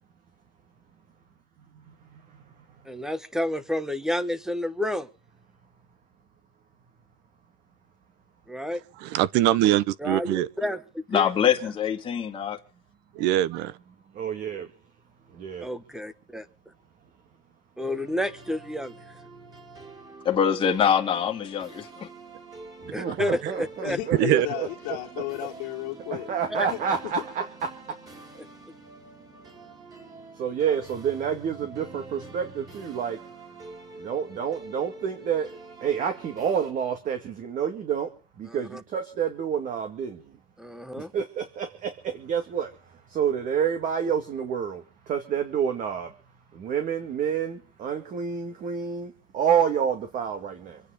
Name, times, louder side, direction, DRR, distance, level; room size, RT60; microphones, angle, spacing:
voice 1, 2.8-5.1 8.5-8.8 10.0-11.3 15.6-16.5 17.8-18.9 22.9-24.0 26.5-26.7 38.5-38.8 40.6-41.1, left 1 dB, 5° right, 1.0 m, -30 dB
voice 2, 9.0-10.5 13.1-13.7 24.2-24.5, right 13 dB, 60° right, 0.9 m, -22 dB
voice 3, 11.1-12.6 20.2-22.1, left 8 dB, 25° left, 2.0 m, -24 dB
voice 4, 14.1-14.7 15.3-15.7 22.8-24.7 26.1-27.4 30.4-33.2 34.0-35.5 35.8-38.1 38.4-40.2 41.0-42.7 43.1-46.1 46.5-50.8, right 7 dB, 40° right, 2.2 m, -28 dB
sound 1, 17.8-36.7, right 3 dB, 20° right, 4.0 m, -46 dB
voice 5, 23.8-26.3 26.7-26.8, left 17 dB, 70° left, 2.4 m, -34 dB
26.0 x 9.4 x 5.1 m
cardioid pair, 135°, 20 cm